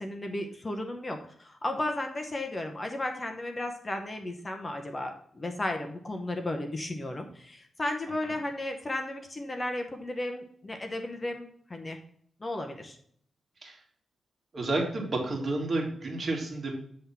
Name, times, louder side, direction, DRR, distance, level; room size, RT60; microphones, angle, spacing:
voice 1, 0.0-12.0 12.4-13.0, left 1 dB, 25° left, 4 dB, 0.8 m, -34 dB
voice 2, 14.5-16.7, right 2 dB, 40° right, 0 dB, 1.9 m, -30 dB
7.7 x 3.6 x 5.5 m, 0.63 s
wide cardioid pair, 120°, 0 cm